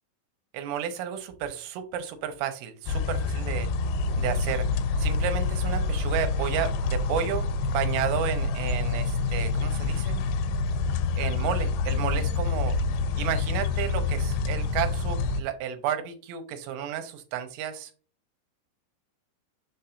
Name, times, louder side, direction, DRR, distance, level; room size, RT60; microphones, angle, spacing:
voice 1, 0.5-3.7 4.2-4.7 5.0-10.2 11.2-12.8 13.2-17.9, right 9 dB, 90° right, 8 dB, 3.3 m, -32 dB
sound 1, 2.9-15.4, left 3 dB, 85° left, 3.1 m, -27 dB
7.1 x 5.7 x 2.6 m, 0.37 s
omnidirectional pair, 5.7 m